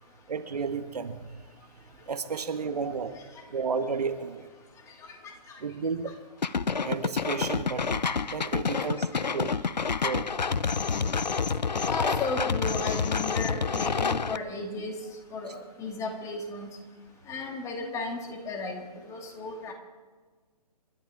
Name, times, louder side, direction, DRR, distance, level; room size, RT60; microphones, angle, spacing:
voice 1, 0.3-1.4 2.1-3.2 3.5-4.5 5.6-6.1 6.8-8.0 8.3-9.1 9.3-9.5 10.0-10.3, right 5 dB, 65° right, 8 dB, 1.5 m, -32 dB
voice 2, 5.0-5.6 11.9-16.7 17.3-19.7, left 3 dB, 15° left, 2 dB, 2.1 m, -35 dB
sound 1, 6.4-14.4, left 5 dB, 85° left, 0.7 m, -28 dB
29.5 x 13.0 x 3.7 m, 1.4 s
figure-of-eight pair, 140°, 21 cm